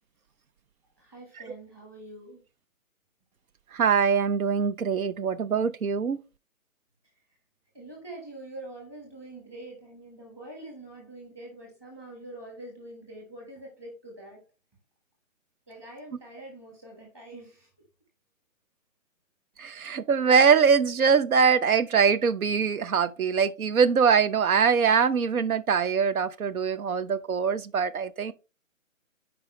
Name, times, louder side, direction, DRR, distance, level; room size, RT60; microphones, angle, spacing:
voice 1, 1.0-2.4 7.7-14.4 15.7-17.7, right 1 dB, 10° right, 1.3 m, -44 dB
voice 2, 3.7-6.2 19.6-28.3, right 6 dB, 85° right, 0.7 m, -23 dB
8.8 x 4.8 x 3.0 m
hypercardioid pair, 165°, 42 cm